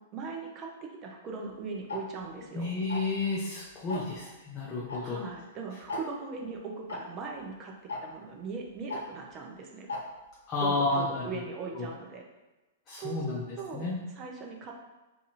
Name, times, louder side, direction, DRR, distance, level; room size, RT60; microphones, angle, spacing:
voice 1, 0.1-2.7 5.0-7.7 8.0-9.9 10.6-12.2 13.0-14.8, right 4 dB, 30° right, 0 dB, 0.5 m, -40 dB
Tick-tock, 1.9-2.0 2.9-3.2 3.9-4.2 4.9-5.0 5.3-5.4 5.9-6.0 6.9-7.0 7.9-8.0 8.9-9.0 9.9-10.0 10.9-11.0, left 2 dB, 90° left, 0.5 m, -35 dB
voice 2, 2.5-5.2 10.5-11.3 11.7-11.9 12.9-13.4 13.7-14.0, left 3 dB, 30° left, -4 dB, 0.5 m, -31 dB
2.6 x 2.5 x 2.8 m, 1.1 s
hypercardioid pair, 130°, 0 cm